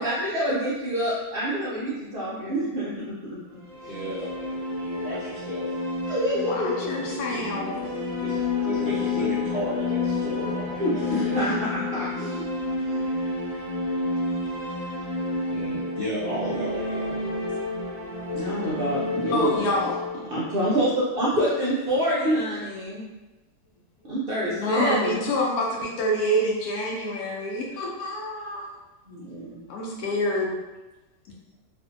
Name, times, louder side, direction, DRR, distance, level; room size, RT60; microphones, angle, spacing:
voice 1, 0.0-3.4 6.1-6.8 10.8-12.4 12.9-13.1 18.3-19.5 20.3-23.1 24.1-25.2 29.1-29.7, equal, 70° right, -8 dB, 0.5 m, -27 dB
sound 1, 3.5-21.5, left 3 dB, 15° right, 0.4 m, -30 dB
voice 2, 3.7-5.7 7.0-11.4 15.5-17.3, equal, 50° left, -11 dB, 0.8 m, -34 dB
voice 3, 6.3-7.7 19.3-20.0 24.5-28.7 29.7-30.5, equal, 75° left, -2 dB, 1.0 m, -27 dB
2.6 x 2.5 x 2.5 m, 1.1 s
omnidirectional pair, 1.7 m